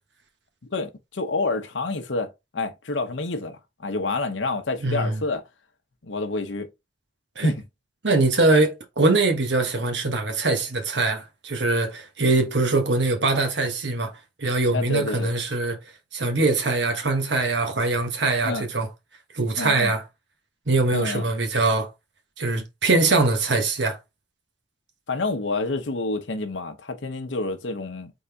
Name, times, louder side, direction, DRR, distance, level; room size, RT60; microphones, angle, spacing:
voice 1, 0.7-5.4 6.0-6.7 7.4-7.6 14.7-15.3 18.4-18.7 19.6-19.9 20.9-21.2 25.1-28.1, left 3 dB, 85° left, 0.8 m, -28 dB
voice 2, 4.8-5.2 7.4-7.5 8.0-14.1 14.4-15.8 16.1-18.9 19.3-20.0 20.7-21.9 22.4-24.0, right 3 dB, 70° right, 1.2 m, -22 dB
4.0 x 3.5 x 3.4 m
head